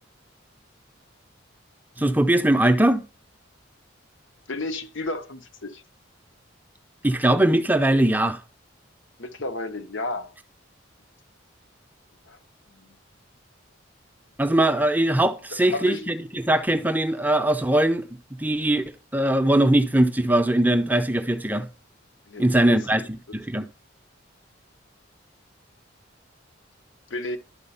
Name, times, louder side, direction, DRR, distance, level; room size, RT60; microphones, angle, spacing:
voice 1, 2.0-3.0 7.0-8.4 14.4-18.1 18.4-18.8 19.1-21.7 22.4-23.7, right 1 dB, 10° right, 0.5 m, -21 dB
voice 2, 4.5-5.8 9.2-10.3 12.3-12.4 12.7-13.0 15.5-16.1 22.3-22.8 27.1-27.4, left 2 dB, 70° left, 0.9 m, -32 dB
11.0 x 4.2 x 5.6 m
head